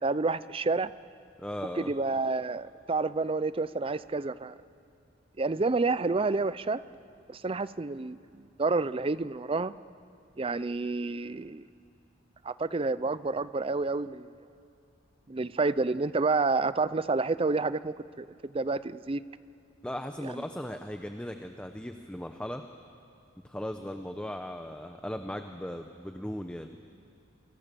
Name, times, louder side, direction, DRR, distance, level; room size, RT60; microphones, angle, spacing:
voice 1, 0.0-0.9 1.8-4.5 5.4-6.8 7.3-9.7 10.4-11.6 12.4-14.3 15.3-19.2, right 3 dB, 30° right, 16 dB, 0.5 m, -29 dB
voice 2, 1.4-1.9 19.8-22.6 23.4-26.7, left 1 dB, 5° left, 6 dB, 0.8 m, -37 dB
29.0 x 25.0 x 6.9 m, 2.7 s
head